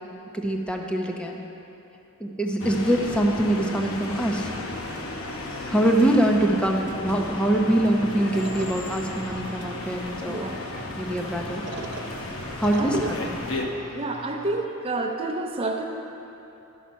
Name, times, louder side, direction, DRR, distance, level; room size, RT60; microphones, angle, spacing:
voice 1, 0.3-1.4 2.2-4.5 5.7-10.5 11.0-11.6 12.6-13.4, right 1 dB, 5° left, 1 dB, 0.7 m, -24 dB
sound 1, 2.6-13.6, left 2 dB, 70° left, 0.9 m, -34 dB
sound 2, 8.2-14.6, right 3 dB, 55° right, 0.6 m, -41 dB
voice 2, 13.9-15.9, right 2 dB, 25° right, 2 dB, 0.8 m, -29 dB
11.5 x 5.8 x 6.5 m, 3.0 s
head